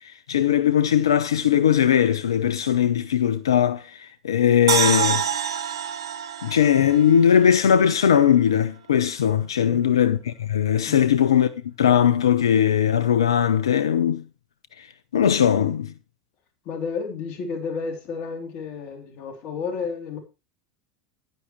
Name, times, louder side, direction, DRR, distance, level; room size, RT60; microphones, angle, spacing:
voice 1, 0.0-5.2 6.4-14.2 14.8-14.9 15.1-15.9, left 9 dB, 90° left, 0.7 m, -20 dB
sound 1, 4.7-7.9 8.2-8.3, right 8 dB, 85° right, 1.2 m, -26 dB
voice 2, 16.6-20.2, left 5 dB, 55° left, 3.2 m, -31 dB
11.0 x 10.0 x 3.1 m
hypercardioid pair, 85°, 2 cm